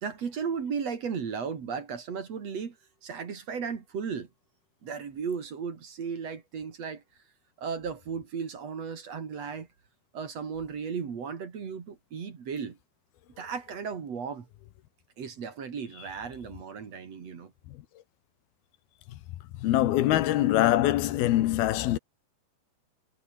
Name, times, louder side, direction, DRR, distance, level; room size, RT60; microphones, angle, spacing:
voice 1, 0.0-2.8 3.0-4.3 4.8-7.0 7.6-9.7 10.1-12.8 13.4-14.5 15.2-17.5, right 6 dB, 45° right, 3.4 m, -35 dB
voice 2, 19.6-22.0, left 14 dB, 85° left, 3.1 m, -24 dB
omnidirectional pair, 4.3 m